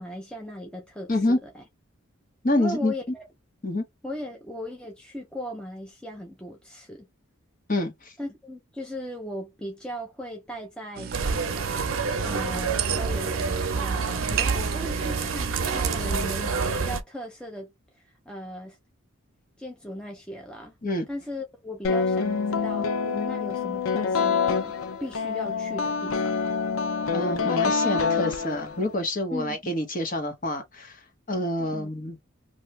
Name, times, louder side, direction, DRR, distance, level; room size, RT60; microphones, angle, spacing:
voice 1, 0.0-1.6 2.6-3.2 4.0-7.1 8.2-11.7 12.2-17.7 17.9-18.8 19.6-20.7 21.1-24.7 25.0-26.3 29.3-29.7 31.6-31.9, equal, 5° left, 0.6 m, -38 dB
voice 2, 1.1-1.4 2.4-2.9 3.6-3.8 7.7-8.1 20.8-21.1 27.1-31.0 31.3-32.2, left 1 dB, 40° left, 1.0 m, -27 dB
sound 1, 11.0-16.2, right 8 dB, 50° right, 0.3 m, -35 dB
sound 2, 11.1-17.0, right 5 dB, 80° right, 0.6 m, -27 dB
sound 3, 21.8-28.9, left 5 dB, 90° left, 0.5 m, -26 dB
2.8 x 2.3 x 3.2 m
head